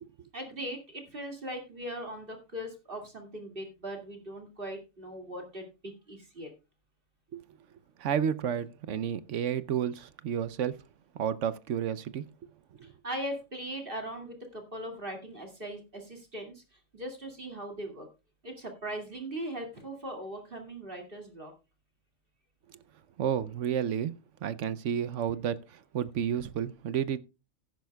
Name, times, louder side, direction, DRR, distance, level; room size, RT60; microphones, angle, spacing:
voice 1, 0.3-6.5 12.8-18.1 18.4-21.5, right 1 dB, 40° right, 2.5 m, -40 dB
voice 2, 8.0-10.8 11.1-12.3 12.8-12.9 23.2-24.1 24.4-27.2, right 8 dB, 65° right, 1.0 m, -31 dB
15.0 x 10.5 x 2.3 m
omnidirectional pair, 1.5 m